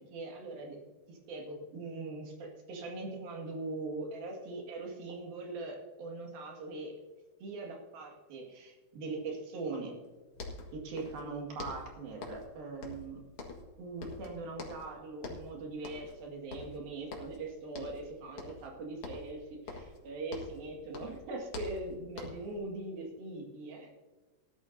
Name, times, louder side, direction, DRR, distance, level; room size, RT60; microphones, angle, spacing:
voice 1, 0.1-0.8 1.1-6.9 7.4-10.0 10.7-13.2 13.8-23.9, right 3 dB, 70° right, 0 dB, 3.7 m, -41 dB
sound 1, 10.0-10.1 10.3-11.3 11.6-12.5 12.8-13.7 14.0-14.9 15.2-15.5 15.8-16.2 16.5-17.4 17.7-18.1 18.4-18.7 19.0-20.7 20.9-22.5, left 3 dB, 50° left, 1.9 m, -45 dB
18.0 x 11.5 x 2.7 m, 1.3 s
omnidirectional pair, 4.4 m